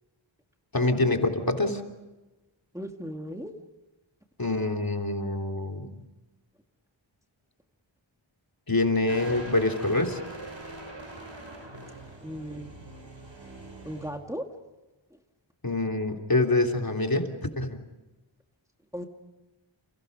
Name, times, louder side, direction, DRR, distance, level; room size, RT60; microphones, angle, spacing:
voice 1, 0.7-1.8 4.4-6.0 8.7-10.2 15.6-17.8, left 2 dB, 45° left, 3 dB, 3.3 m, -26 dB
voice 2, 2.7-3.5 12.2-12.7 13.8-14.5 18.9-19.0, equal, 5° right, 3 dB, 2.2 m, -36 dB
sound 1, 9.1-14.1, right 1 dB, 60° right, 7.2 m, -42 dB
30.0 x 29.5 x 5.4 m, 1.1 s
wide cardioid pair, 55°, 49 cm